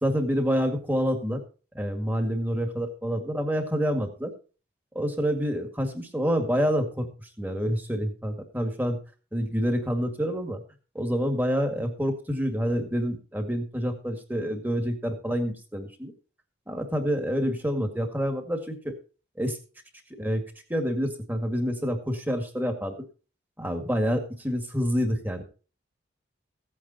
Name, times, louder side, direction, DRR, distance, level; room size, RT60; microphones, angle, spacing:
voice 1, 0.0-1.4 1.7-4.3 4.9-9.0 9.3-10.6 10.9-16.1 16.7-18.9 19.4-19.6 20.2-20.4 20.7-22.9 23.6-25.4, equal, 10° right, 5 dB, 2.0 m, -27 dB
16.0 x 8.7 x 4.2 m, 0.37 s
head